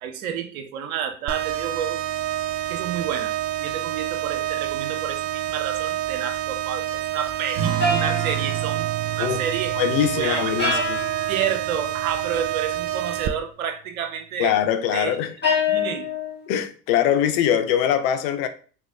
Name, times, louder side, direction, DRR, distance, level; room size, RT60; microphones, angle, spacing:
voice 1, 0.0-2.0 2.7-3.3 3.6-8.9 9.2-9.7 10.1-11.0 11.3-14.5 14.9-15.2 15.7-16.1, right 8 dB, 85° right, 0.6 m, -30 dB
sound 1, 1.3-13.3, right 13 dB, 35° right, 0.4 m, -28 dB
sound 2, 7.5-12.6, right 11 dB, 55° right, 1.6 m, -32 dB
sound 3, 7.8-9.0 10.6-11.4 15.4-16.4, left 3 dB, 25° left, 1.8 m, -25 dB
voice 2, 9.7-11.0 14.4-15.3 16.5-18.5, left 10 dB, 70° left, 0.6 m, -22 dB
3.6 x 3.1 x 2.6 m
hypercardioid pair, 60°, 41 cm